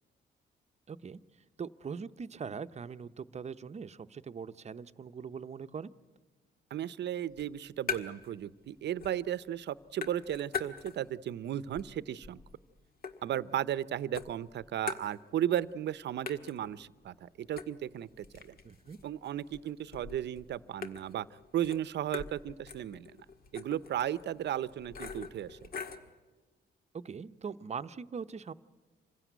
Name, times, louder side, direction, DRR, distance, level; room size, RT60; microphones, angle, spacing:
voice 1, 0.9-1.2 1.6-5.9 18.6-19.0 26.9-28.5, right 6 dB, 35° right, 12 dB, 0.8 m, -41 dB
voice 2, 6.7-12.4 13.2-18.5 19.0-21.3 21.5-23.3 23.5-25.6, right 11 dB, 70° right, 17 dB, 0.7 m, -35 dB
sound 1, 7.3-8.4 8.7-9.4 9.6-11.2 11.6-13.8 14.1-15.6 15.9-16.0 16.3-26.1, left 5 dB, 55° left, 1.7 m, -43 dB
26.5 x 16.0 x 9.3 m, 1.3 s
cardioid pair, 105°, 19 cm